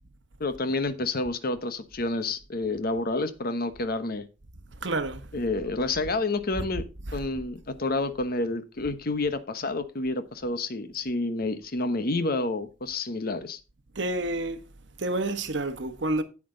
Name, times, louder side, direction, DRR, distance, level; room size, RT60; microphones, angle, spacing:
voice 1, 0.4-4.3 5.3-6.9 7.1-13.6, left 2 dB, 55° left, 1.0 m, -29 dB
voice 2, 4.8-5.2 6.6-6.7 7.1-7.2 14.0-14.6 15.0-16.2, right 2 dB, 70° right, 1.1 m, -29 dB
9.5 x 8.5 x 3.8 m
head